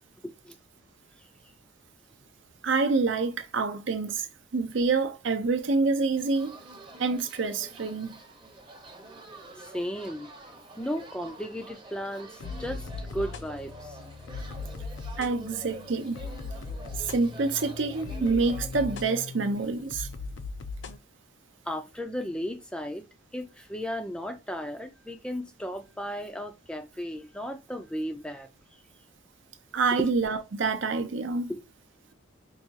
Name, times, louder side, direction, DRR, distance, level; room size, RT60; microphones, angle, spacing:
voice 1, 0.2-0.6 9.6-10.3 10.8-14.0 21.7-23.0 23.3-28.5 30.0-30.1 31.5-31.6, equal, 5° left, 0.4 m, -35 dB
voice 2, 2.6-4.3 4.5-6.5 7.0-8.2 15.2-16.2 17.0-20.1 29.7-31.5, right 4 dB, 65° right, 0.6 m, -27 dB
sound 1, 6.2-19.8, right 2 dB, 25° right, 0.7 m, -47 dB
sound 2, 12.4-21.0, left 4 dB, 65° left, 0.5 m, -39 dB
4.8 x 2.3 x 2.8 m
head